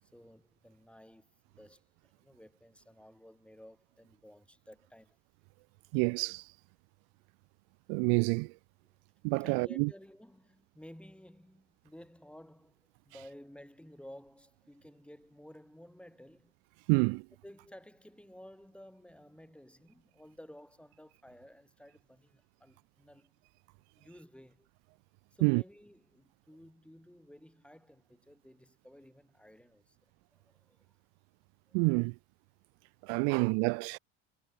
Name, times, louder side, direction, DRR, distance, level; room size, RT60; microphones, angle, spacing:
voice 1, 0.0-1.8 2.2-5.2 9.4-16.5 17.4-23.3 24.0-24.7 25.3-30.0 30.3-31.0 31.7-32.0 33.1-33.5, left 1 dB, 5° left, 4.7 m, -55 dB
voice 2, 5.9-6.5 7.9-8.5 9.2-9.9 16.9-17.2 25.4-25.6 31.7-32.1 33.0-34.0, right 39 dB, 75° right, 0.5 m, -28 dB
supercardioid pair, 85°, 36 cm